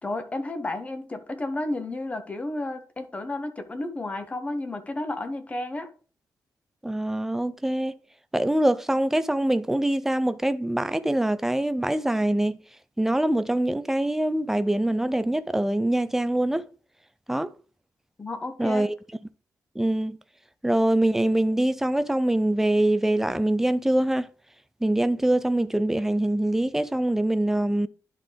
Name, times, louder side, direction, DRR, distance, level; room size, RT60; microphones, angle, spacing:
voice 1, 0.0-5.9 18.2-18.9, left 2 dB, 20° left, 0.8 m, -32 dB
voice 2, 6.8-7.9 8.3-12.6 13.0-16.6 17.3-17.5 18.6-18.9 19.8-20.2 20.6-24.3 24.8-27.9, right 1 dB, 5° right, 0.4 m, -24 dB
11.0 x 3.8 x 3.4 m
wide cardioid pair, 145°, 7 cm